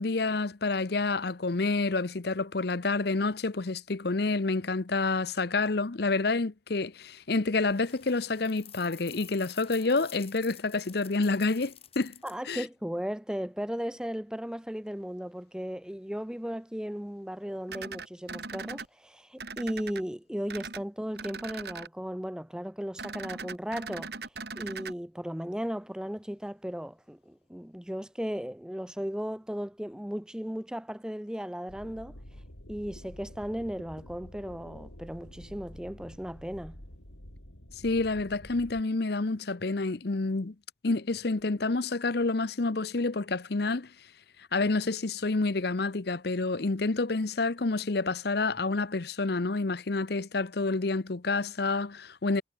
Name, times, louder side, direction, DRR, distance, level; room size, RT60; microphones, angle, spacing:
voice 1, 0.0-12.2 12.5-12.6 37.8-40.5 40.8-43.9 44.5-52.4, left 3 dB, 55° left, 0.8 m, -28 dB
sound 1, 7.6-12.5, left 10 dB, 30° left, 6.2 m, -50 dB
voice 2, 12.2-24.1 24.6-32.2 32.7-36.8, equal, 5° right, 0.5 m, -36 dB
sound 2, 17.7-18.9 19.4-20.0 20.5-20.8 21.2-21.9 23.0-24.9, right 4 dB, 55° right, 2.5 m, -39 dB
sound 3, 31.7-38.8, equal, 90° left, 6.5 m, -48 dB
head